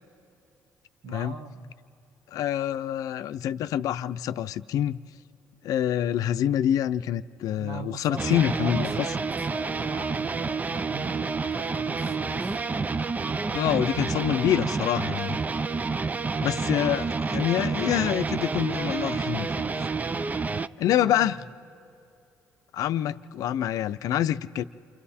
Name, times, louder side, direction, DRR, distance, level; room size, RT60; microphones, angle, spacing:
voice 1, 1.0-1.7 7.6-9.2 9.5-12.6 20.8-21.4, right 4 dB, 75° right, 4 dB, 1.6 m, -41 dB
voice 2, 2.3-5.0 5.6-9.1 13.5-15.4 16.4-19.7 20.8-21.4 22.7-24.6, left 11 dB, 75° left, 12 dB, 0.5 m, -26 dB
sound 1, 8.2-20.7, right 4 dB, 25° right, 0.4 m, -29 dB
29.0 x 26.0 x 4.3 m, 2.7 s
cardioid pair, 80°, 6 cm